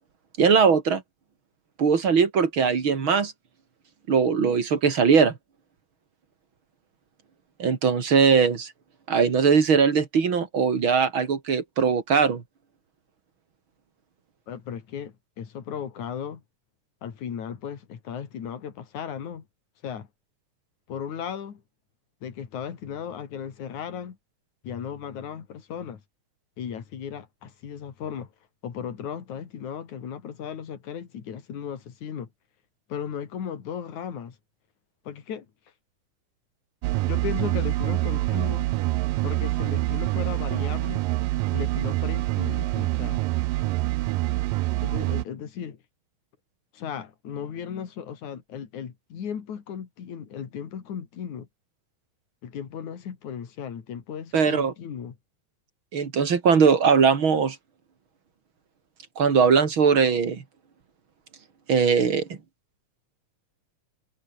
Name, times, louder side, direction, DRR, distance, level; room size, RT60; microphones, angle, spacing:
voice 1, 0.4-1.0 1.8-3.3 4.1-5.3 7.6-8.7 9.1-12.4 54.3-54.7 55.9-57.6 59.2-60.4 61.7-62.3, right 6 dB, 40° right, 2.9 m, -20 dB
voice 2, 14.5-16.4 17.0-19.5 19.8-20.1 20.9-21.6 22.2-24.2 24.6-26.0 26.6-28.3 28.6-32.3 32.9-34.4 35.1-35.5 36.9-38.7 39.2-41.0 41.5-43.2 44.8-45.8 46.7-51.5 52.4-55.2, left 8 dB, 60° left, 4.0 m, -36 dB
sound 1, 36.8-45.2, right 19 dB, 80° right, 2.3 m, -26 dB
omnidirectional pair, 4.0 m